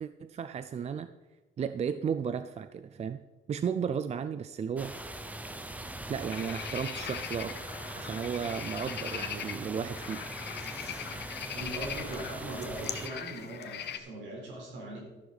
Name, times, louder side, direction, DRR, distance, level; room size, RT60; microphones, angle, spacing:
voice 1, 0.0-1.1 1.6-3.2 3.5-5.3 6.1-7.6 8.0-10.2, right 7 dB, 35° right, 11 dB, 0.4 m, -34 dB
sound 1, 4.8-13.1, right 1 dB, 10° right, 0.7 m, -41 dB
sound 2, 6.3-14.0, left 9 dB, 65° left, 1.1 m, -40 dB
voice 2, 11.5-15.0, right 2 dB, 85° right, -2 dB, 4.2 m, -40 dB
13.0 x 11.0 x 4.1 m, 1.2 s
cardioid pair, 145°, 19 cm